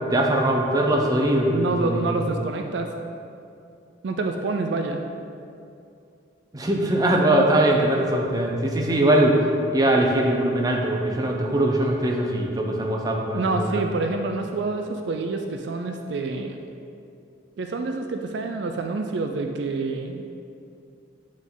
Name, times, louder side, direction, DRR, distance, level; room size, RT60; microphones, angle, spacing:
voice 1, 0.1-2.0 6.5-9.4 9.7-13.8, right 1 dB, 20° right, 0 dB, 0.6 m, -21 dB
voice 2, 1.5-2.9 4.0-5.0 12.8-12.9 13.3-16.6 17.6-20.3, right 3 dB, 60° right, 4 dB, 0.4 m, -27 dB
8.2 x 3.7 x 3.8 m, 2.5 s
head